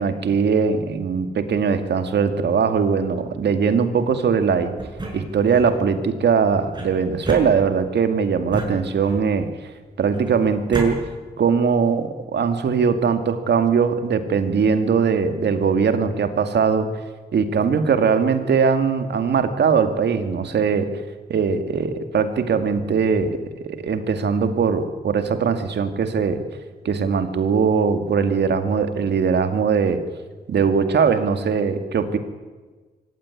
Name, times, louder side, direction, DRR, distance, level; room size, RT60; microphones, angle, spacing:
voice 1, 0.0-4.7 5.1-11.0 11.4-16.9 17.3-20.9 21.3-23.4 23.6-26.4 26.8-30.0 30.5-32.2, right 6 dB, 85° right, 8 dB, 2.2 m, -20 dB
sound 1, 4.8-5.7 6.7-8.0 8.5-9.4 10.1-10.9, right 2 dB, 25° right, 7.0 m, -32 dB
24.5 x 15.5 x 9.8 m, 1.4 s
wide cardioid pair, 95°, 17 cm